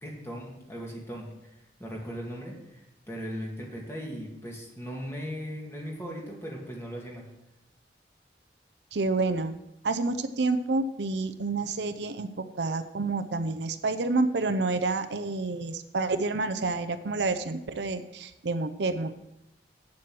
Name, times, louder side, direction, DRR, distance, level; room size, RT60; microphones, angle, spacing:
voice 1, 0.0-7.2, equal, 15° left, -2 dB, 2.2 m, -38 dB
voice 2, 8.9-9.5 9.8-19.1, right 3 dB, 75° right, 10 dB, 0.6 m, -29 dB
8.5 x 7.6 x 6.1 m, 0.89 s
head